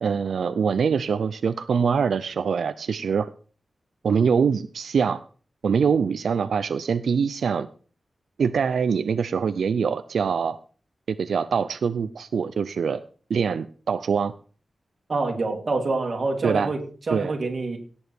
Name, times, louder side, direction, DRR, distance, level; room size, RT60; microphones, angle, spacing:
voice 1, 0.0-3.3 4.0-5.2 5.6-7.7 8.4-10.6 11.1-13.0 13.3-14.3 16.4-16.7 17.1-17.3, right 6 dB, 85° right, 11 dB, 0.5 m, -24 dB
voice 2, 15.1-16.8 17.1-17.8, right 3 dB, 40° right, 2 dB, 2.5 m, -26 dB
17.5 x 7.1 x 4.5 m, 0.40 s
wide cardioid pair, 160°, 0 cm